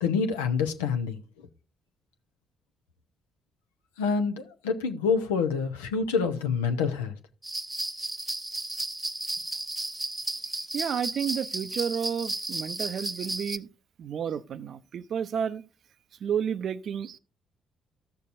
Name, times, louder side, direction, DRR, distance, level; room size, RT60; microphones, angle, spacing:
voice 1, 0.0-1.2 4.0-7.1, left 5 dB, 85° left, 0.7 m, -27 dB
sound 1, 7.4-13.6, right 2 dB, 15° right, 0.6 m, -34 dB
voice 2, 10.7-13.7 14.0-15.6 16.2-17.2, right 8 dB, 60° right, 0.5 m, -31 dB
14.5 x 6.7 x 2.6 m
hypercardioid pair, 45°, 0 cm